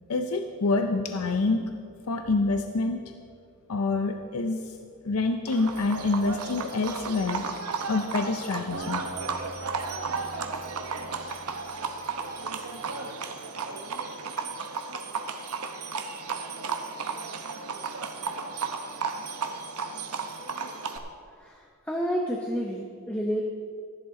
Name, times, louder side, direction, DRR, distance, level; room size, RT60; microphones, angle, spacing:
voice 1, 0.1-1.6 2.1-3.1 3.7-4.7 5.0-9.0, left 3 dB, 80° left, 6 dB, 0.6 m, -27 dB
Livestock farm animals working animals, 5.5-21.0, right 4 dB, 90° right, 0.9 m, -34 dB
Acoustic guitar, 8.7-11.9, right 1 dB, 55° right, 1.3 m, -43 dB
voice 2, 21.9-23.4, equal, 5° left, -1 dB, 0.6 m, -29 dB
14.0 x 11.5 x 3.7 m, 2.2 s
head